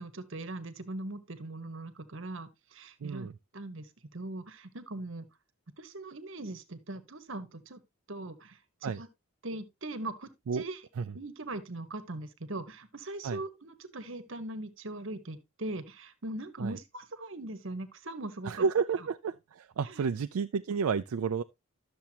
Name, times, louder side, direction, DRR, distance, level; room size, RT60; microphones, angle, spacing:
voice 1, 0.0-3.3 3.5-5.3 5.8-7.8 8.1-9.1 9.4-10.8 11.1-18.6 19.0-19.1 19.8-20.1, right 2 dB, 60° right, 1.2 m, -40 dB
voice 2, 3.0-3.3 8.8-9.0 10.5-10.6 11.0-11.1 13.2-13.4 16.6-16.8 18.4-21.4, right 5 dB, 80° right, 0.4 m, -31 dB
12.0 x 6.9 x 2.8 m
head